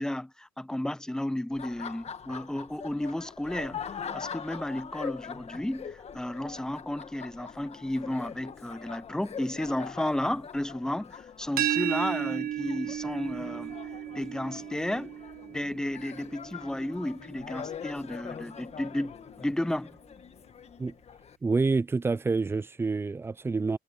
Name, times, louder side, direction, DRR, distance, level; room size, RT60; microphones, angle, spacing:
voice 1, 0.0-13.8 14.1-15.2 15.5-20.0, left 1 dB, 5° left, 0.7 m, -33 dB
Laughter, 1.5-21.4, left 7 dB, 40° left, 1.5 m, -43 dB
sound 1, 11.6-17.3, right 11 dB, 60° right, 0.9 m, -34 dB
voice 2, 21.4-23.8, right 4 dB, 15° right, 0.4 m, -27 dB
cardioid pair, 110°, 17 cm